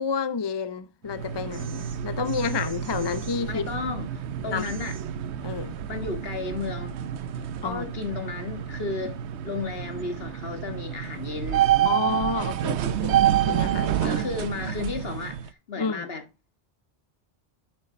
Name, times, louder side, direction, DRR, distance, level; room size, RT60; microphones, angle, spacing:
voice 1, 0.0-3.7 4.5-4.7 5.4-5.8 7.6-7.9 11.8-14.2 15.8-16.1, left 6 dB, 35° left, 0.5 m, -30 dB
sound 1, 1.1-15.5, right 11 dB, 85° right, 1.0 m, -28 dB
voice 2, 3.5-4.9 5.9-7.0 7.6-9.2 9.4-11.7 14.0-16.2, left 4 dB, 60° left, 1.9 m, -33 dB
8.0 x 6.6 x 4.2 m
omnidirectional pair, 1.1 m